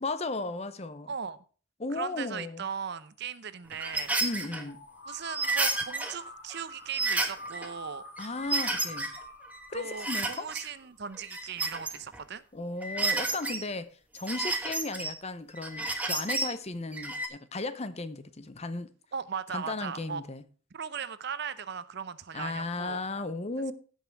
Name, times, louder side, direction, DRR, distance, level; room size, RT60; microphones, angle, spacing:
voice 1, 0.0-1.1 1.8-2.7 4.2-4.8 8.2-9.1 9.7-10.5 12.5-18.9 19.5-20.4 22.3-23.7, left 2 dB, 30° left, 0.7 m, -35 dB
voice 2, 1.1-1.4 1.9-4.1 5.0-8.0 9.7-12.4 19.1-20.2 20.7-23.0, right 6 dB, 55° right, 0.6 m, -38 dB
sound 1, 3.7-4.6 5.3-6.1 6.5-6.6 6.9-7.7 8.2-9.2 9.5-10.7 11.1-12.2 12.8-13.6 14.2-15.1 15.6-16.5 16.9-17.3, right 3 dB, 5° right, 1.3 m, -31 dB
sound 2, 4.6-11.4, equal, 60° left, 2.9 m, -47 dB
16.5 x 5.6 x 4.5 m
head